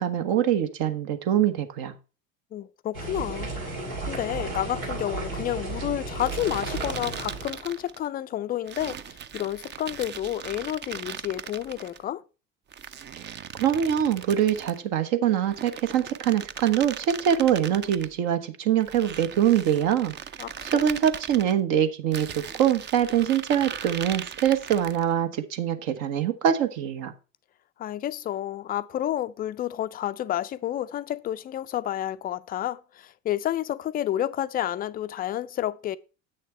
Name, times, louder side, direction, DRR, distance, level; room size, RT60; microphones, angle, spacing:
voice 1, 0.0-1.9 13.2-13.3 13.6-20.1 20.6-27.1, right 9 dB, 55° right, 1.2 m, -24 dB
voice 2, 2.5-3.5 4.1-12.2 20.4-20.9 27.8-36.0, left 12 dB, 25° left, 0.4 m, -30 dB
sound 1, 2.9-7.6, right 2 dB, 85° right, 2.5 m, -33 dB
sound 2, 6.2-8.1 8.7-12.0 12.7-14.8 15.4-18.1 18.8-21.5 22.1-25.1, right 8 dB, 25° right, 0.6 m, -39 dB
8.0 x 6.5 x 4.4 m
figure-of-eight pair, 70°, 41 cm